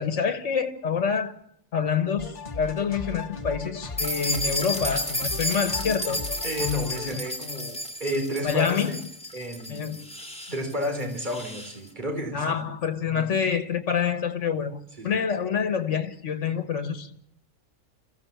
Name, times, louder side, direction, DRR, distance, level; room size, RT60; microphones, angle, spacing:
voice 1, 0.0-1.3 1.7-6.2 8.4-9.0 9.7-10.0 12.3-17.2, left 6 dB, 65° left, 1.7 m, -27 dB
sound 1, 2.2-7.2, left 3 dB, 30° left, 1.7 m, -37 dB
sound 2, 4.0-11.8, left 1 dB, 5° left, 3.0 m, -32 dB
voice 2, 6.4-9.0 9.3-9.9 10.5-12.6 13.1-13.3 15.0-15.1, left 1 dB, 35° right, 4.0 m, -31 dB
26.5 x 15.5 x 7.3 m
omnidirectional pair, 1.4 m